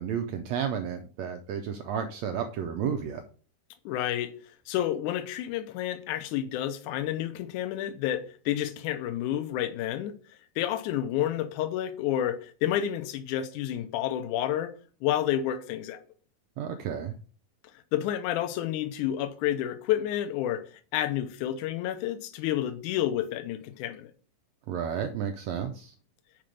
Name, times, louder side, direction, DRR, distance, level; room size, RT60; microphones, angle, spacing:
voice 1, 0.0-3.2 16.6-17.1 24.7-25.9, right 8 dB, 80° right, 1.6 m, -32 dB
voice 2, 3.9-4.3 4.7-10.1 10.6-14.7 15.0-16.0 17.9-20.6 20.9-24.1, left 11 dB, 75° left, 2.1 m, -30 dB
5.9 x 5.2 x 6.3 m
omnidirectional pair, 3.7 m